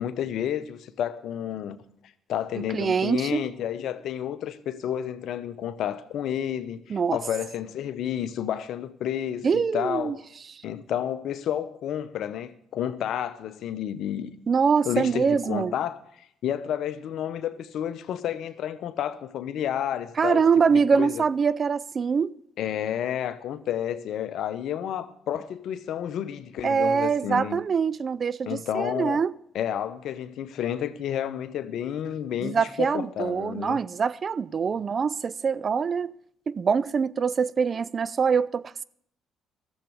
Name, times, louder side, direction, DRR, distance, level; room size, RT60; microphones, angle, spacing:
voice 1, 0.0-1.8 2.3-10.2 10.6-14.4 14.8-20.4 20.7-21.2 22.6-27.6 28.5-29.2 29.5-33.8, left 10 dB, 70° left, 0.8 m, -31 dB
voice 2, 2.6-3.5 6.9-7.2 9.4-10.2 10.5-10.6 14.5-15.7 20.2-22.3 26.6-29.3 32.4-36.1 36.5-38.8, right 6 dB, 45° right, 0.4 m, -24 dB
13.5 x 7.3 x 8.3 m
hypercardioid pair, 55°, 0 cm